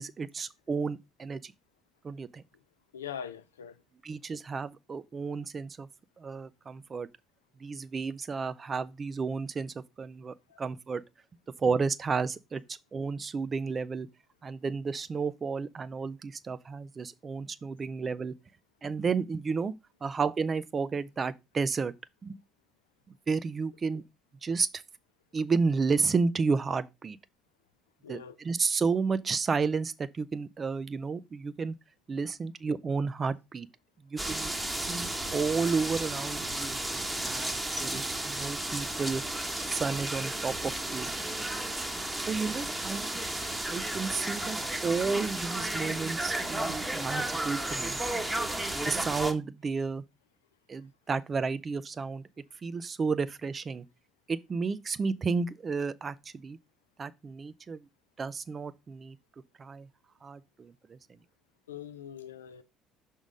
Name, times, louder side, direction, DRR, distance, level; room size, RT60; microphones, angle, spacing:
voice 1, 0.0-1.5 2.0-2.4 4.0-5.9 6.2-7.1 7.6-11.0 11.6-14.1 14.4-18.3 18.8-19.7 20.0-21.9 22.2-22.4 23.3-24.0 24.4-24.7 25.3-27.2 28.1-31.8 32.1-33.7 34.1-39.2 39.7-41.1 42.3-43.1 43.7-48.0 48.9-50.0 50.7-52.2 52.6-53.8 54.3-56.6 57.0-57.9 58.2-59.2 59.6-59.9 60.2-61.0, right 4 dB, 35° right, 0.5 m, -32 dB
voice 2, 2.9-3.8 10.5-10.6 28.0-28.4 61.7-62.6, left 8 dB, 90° left, 0.5 m, -42 dB
sound 1, 34.2-49.3, right 1 dB, 15° right, 1.1 m, -33 dB
6.1 x 3.6 x 5.2 m
hypercardioid pair, 60°, 0 cm